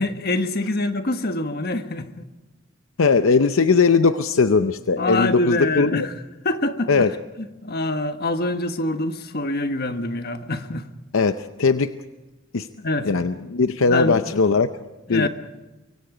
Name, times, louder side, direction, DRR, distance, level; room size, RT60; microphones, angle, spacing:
voice 1, 0.0-2.1 5.0-6.1 6.4-7.1 7.4-10.8 12.8-13.1 13.9-14.2 15.1-15.3, left 2 dB, 50° left, 1.3 m, -25 dB
voice 2, 3.0-6.1 6.9-7.1 11.1-11.9 12.5-12.7 13.0-14.7 15.1-15.3, left 4 dB, 75° left, 0.7 m, -19 dB
25.0 x 23.5 x 5.0 m
head